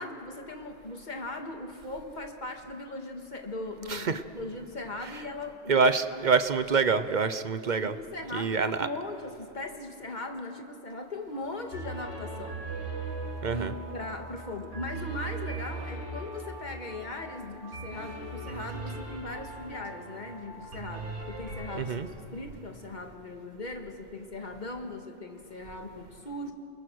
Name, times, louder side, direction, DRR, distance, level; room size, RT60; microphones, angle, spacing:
voice 1, 0.0-5.8 6.1-6.3 7.8-12.6 13.5-26.5, left 2 dB, 40° left, 4 dB, 1.9 m, -39 dB
voice 2, 3.9-4.2 5.7-7.9 8.3-8.9 13.4-13.7 21.8-22.1, right 5 dB, 45° right, 12 dB, 0.7 m, -26 dB
sound 1, 11.3-21.8, right 3 dB, 75° right, 4.2 m, -39 dB
29.5 x 21.5 x 6.3 m, 2.7 s
omnidirectional pair, 1.3 m